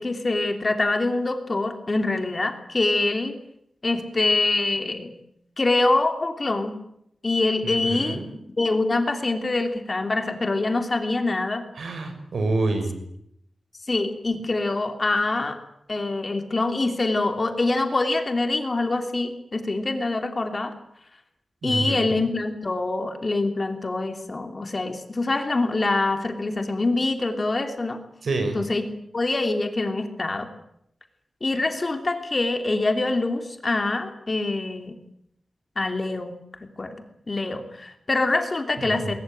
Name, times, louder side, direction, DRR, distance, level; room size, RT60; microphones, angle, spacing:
voice 1, 0.0-3.3 3.8-5.1 5.6-6.8 7.2-8.2 8.6-11.6 13.9-15.6 15.9-20.7 21.6-28.0 28.5-28.9 29.1-30.5 31.4-34.9 35.8-36.3 36.8-37.0 37.3-39.1, left 2 dB, 35° left, 6 dB, 2.9 m, -25 dB
voice 2, 7.6-8.3 11.8-13.0 21.6-22.2 28.2-28.6 38.8-39.2, right 2 dB, 80° right, 7 dB, 5.3 m, -27 dB
21.5 x 20.5 x 9.1 m, 0.74 s
wide cardioid pair, 130°, 0 cm